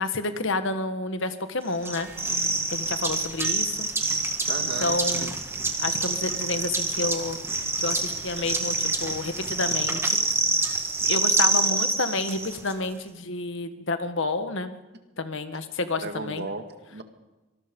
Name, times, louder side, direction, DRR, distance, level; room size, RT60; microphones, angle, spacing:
voice 1, 0.0-2.1 2.7-3.9 4.8-5.4 5.8-7.4 7.8-10.2 11.1-14.7 15.2-16.5, left 3 dB, 60° left, 9 dB, 1.6 m, -29 dB
sound 1, 1.8-12.7, right 3 dB, 10° right, 1.8 m, -26 dB
voice 2, 4.5-5.3 7.6-7.7 16.0-17.0, right 2 dB, 50° right, 7 dB, 2.0 m, -36 dB
25.0 x 20.0 x 5.4 m, 1.1 s
head